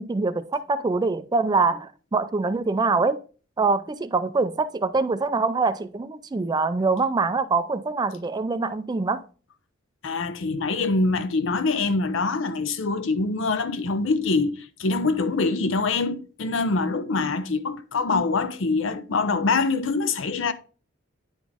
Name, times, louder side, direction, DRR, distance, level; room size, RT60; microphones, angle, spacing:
voice 1, 0.0-3.2 3.6-9.2, right 3 dB, 20° right, 0.3 m, -24 dB
voice 2, 10.0-20.5, left 3 dB, 70° left, 0.6 m, -24 dB
9.6 x 4.0 x 3.4 m
head